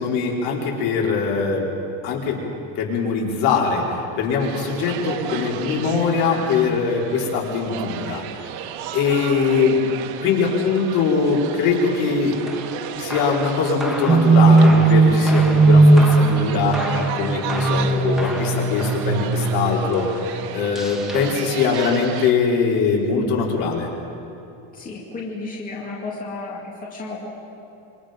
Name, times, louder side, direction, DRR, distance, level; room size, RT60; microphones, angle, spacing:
voice 1, 0.0-1.6 2.0-2.4 2.8-3.8 4.2-8.2 8.9-9.8 10.2-12.4 13.0-20.1 20.5-23.9, left 5 dB, 65° left, -2 dB, 4.5 m, -22 dB
sound 1, 4.4-22.3, right 10 dB, 75° right, 1.4 m, -34 dB
sound 2, 12.4-22.6, equal, ahead, 1.4 m, -35 dB
sound 3, 14.1-20.3, right 3 dB, 15° right, 1.3 m, -17 dB
voice 2, 16.0-16.3 16.9-17.3 24.7-27.3, left 3 dB, 20° left, -3 dB, 2.4 m, -33 dB
27.0 x 24.0 x 5.2 m, 2.8 s
cardioid pair, 170°, 42 cm